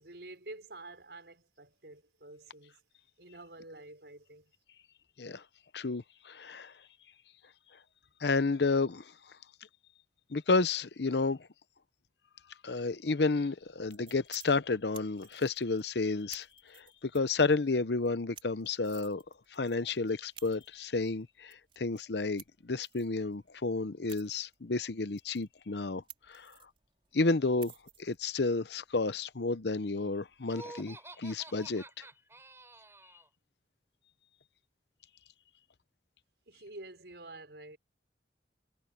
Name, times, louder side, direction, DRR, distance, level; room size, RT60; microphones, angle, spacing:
voice 1, 0.0-2.8 3.2-4.5 36.5-37.8, right 2 dB, 75° right, 5.1 m, -49 dB
voice 2, 5.7-6.7 8.2-9.1 10.3-11.5 12.6-19.2 19.5-26.5 27.1-27.7 28.0-32.0, left 3 dB, 75° left, 0.8 m, -31 dB
sound 1, 13.6-30.5, right 9 dB, 30° right, 4.4 m, -57 dB
Laughter, 30.4-33.3, right 2 dB, 15° right, 4.1 m, -49 dB
head